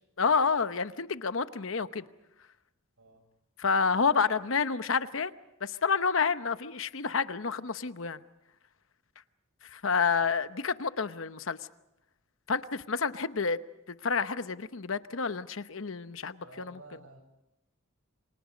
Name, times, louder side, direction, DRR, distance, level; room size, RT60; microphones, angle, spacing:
voice 1, 0.2-2.0 3.6-5.3 5.6-8.2 9.7-11.6 12.5-13.6 14.0-16.8, left 5 dB, 65° left, 12 dB, 0.9 m, -29 dB
voice 2, 10.0-10.3 16.4-17.2, right 2 dB, 80° right, 5 dB, 8.0 m, -52 dB
28.5 x 26.0 x 5.2 m, 0.89 s
head